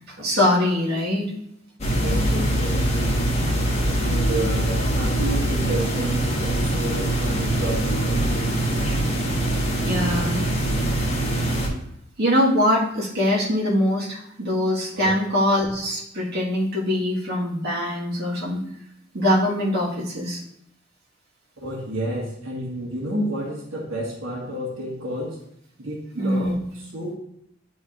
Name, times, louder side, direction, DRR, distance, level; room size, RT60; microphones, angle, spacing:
voice 1, 0.2-1.3 9.8-10.4 12.2-18.6 19.1-20.4 26.2-26.6, left 1 dB, 55° right, -5 dB, 1.7 m, -22 dB
sound 1, 1.8-11.7, right 1 dB, 35° left, 1.3 m, -23 dB
voice 2, 2.0-3.2 4.0-8.5 14.9-15.2 21.6-25.4 25.8-27.1, right 1 dB, 80° right, -3 dB, 1.6 m, -30 dB
10.5 x 4.2 x 2.5 m, 0.75 s
head